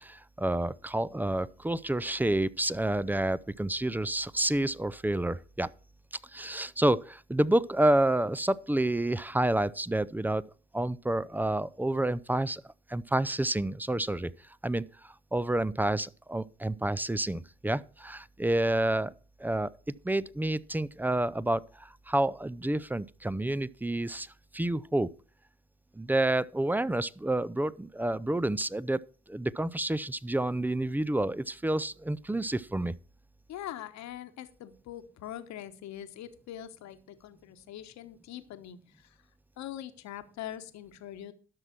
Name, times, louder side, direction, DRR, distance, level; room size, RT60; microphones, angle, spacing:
voice 1, 0.0-5.7 6.3-10.4 10.7-12.6 12.9-14.3 14.6-19.1 19.4-19.7 20.0-25.1 26.0-29.0 29.3-33.0, right 1 dB, 5° right, 0.5 m, -29 dB
voice 2, 33.5-39.2 39.6-41.3, left 11 dB, 65° left, 1.2 m, -43 dB
12.5 x 6.1 x 5.9 m
hypercardioid pair, 50°, 29 cm